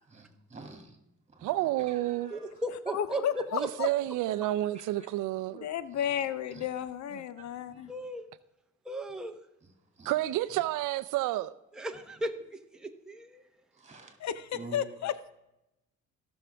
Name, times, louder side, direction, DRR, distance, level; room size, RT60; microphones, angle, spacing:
voice 1, 0.1-1.0 1.3-2.5 4.7-5.1 5.6-5.7 6.5-6.6 7.4-7.9 9.6-9.7 10.0-10.1 13.8-14.2 14.5-14.8, right 2 dB, 20° right, 2.4 m, -49 dB
voice 2, 1.4-2.3 3.5-5.7 10.1-11.5, right 15 dB, 85° right, 0.5 m, -30 dB
voice 3, 2.3-3.2 7.9-8.2 8.9-9.3 11.7-12.3 12.7-13.4, right 1 dB, ahead, 0.9 m, -36 dB
voice 4, 2.9-3.9 5.5-7.9 14.2-15.3, left 10 dB, 65° left, 0.6 m, -33 dB
17.5 x 6.2 x 3.4 m
cardioid pair, 90°, 30 cm